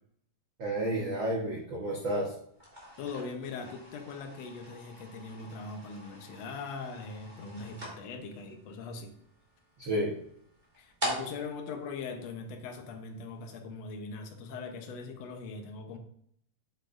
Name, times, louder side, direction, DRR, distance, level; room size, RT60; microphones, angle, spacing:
voice 1, 0.6-2.3 9.8-10.1, right 1 dB, 80° right, -4 dB, 1.0 m, -31 dB
sound 1, 2.5-12.9, equal, 15° right, 2.2 m, -44 dB
voice 2, 3.0-9.1 10.8-16.0, left 4 dB, 75° left, 4 dB, 1.5 m, -41 dB
8.3 x 7.5 x 2.6 m, 0.68 s
omnidirectional pair, 4.2 m